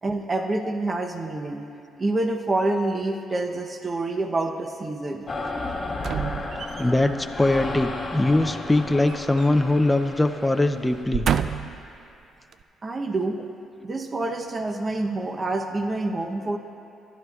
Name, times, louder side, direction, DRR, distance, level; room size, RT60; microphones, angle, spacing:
voice 1, 0.0-1.6 2.0-5.3 12.8-13.4 13.8-16.6, right 2 dB, 30° right, 4 dB, 0.7 m, -27 dB
sound 1, 5.3-11.0, left 2 dB, 25° left, 1.5 m, -33 dB
sound 2, 6.0-7.1 8.7-9.8 10.1-10.3 10.9-11.9 12.5-12.6, right 8 dB, 60° right, 0.3 m, -29 dB
voice 2, 6.8-11.3, left 2 dB, 10° left, 7 dB, 0.4 m, -22 dB
20.0 x 11.0 x 2.3 m, 2.5 s
cardioid pair, 90°, 0 cm